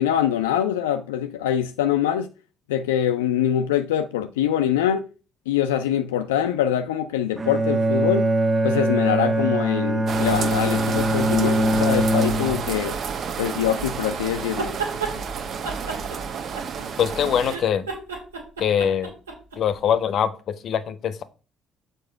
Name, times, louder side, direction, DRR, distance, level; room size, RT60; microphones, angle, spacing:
voice 1, 0.0-2.3 2.7-5.1 5.5-8.3 8.6-13.0 13.4-14.7, left 10 dB, 75° left, 0.4 m, -24 dB
Bowed string instrument, 7.4-12.8, right 1 dB, 30° right, 1.2 m, -22 dB
sound 1, 10.1-17.6, right 6 dB, 50° right, 0.9 m, -30 dB
sound 2, 14.4-15.1 15.6-17.0 17.4-19.6, right 4 dB, 85° right, 1.9 m, -31 dB
voice 2, 17.0-17.8 18.6-19.1 19.6-21.2, left 8 dB, 55° left, 0.7 m, -23 dB
6.7 x 4.8 x 4.4 m
figure-of-eight pair, 50°, 0 cm